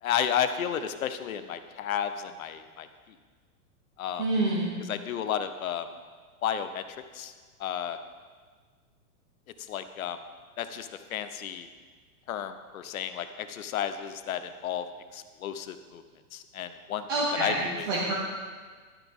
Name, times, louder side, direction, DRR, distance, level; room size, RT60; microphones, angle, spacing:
voice 1, 0.0-2.9 4.0-4.2 4.9-5.9 6.4-6.8 7.1-7.3 7.6-8.0 9.7-10.2 10.6-11.7 12.3-14.9 15.1-16.0 16.3-17.1 17.4-17.9, left 9 dB, 65° left, 10 dB, 0.9 m, -32 dB
voice 2, 4.2-4.7 17.1-18.1, right 2 dB, 15° right, -5 dB, 0.6 m, -27 dB
12.5 x 9.3 x 3.6 m, 1.5 s
supercardioid pair, 175°, 45 cm